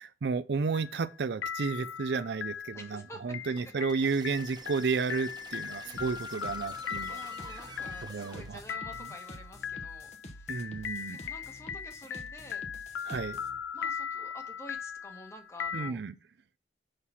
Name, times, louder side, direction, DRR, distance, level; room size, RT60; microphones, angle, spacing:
voice 1, 0.0-7.2 8.1-8.6 10.5-11.2 13.1-13.4 15.7-16.1, right 4 dB, 65° right, 0.4 m, -32 dB
sound 1, 0.7-1.2 1.4-15.9, left 7 dB, 85° left, 0.4 m, -39 dB
voice 2, 2.7-3.4 5.8-6.3 7.1-12.6 13.1-13.3 13.7-16.0, left 1 dB, 15° left, 1.3 m, -50 dB
sound 2, 3.6-8.6, right 4 dB, 25° right, 1.1 m, -49 dB
sound 3, 6.0-13.6, equal, 40° left, 1.1 m, -48 dB
6.5 x 5.7 x 5.6 m
head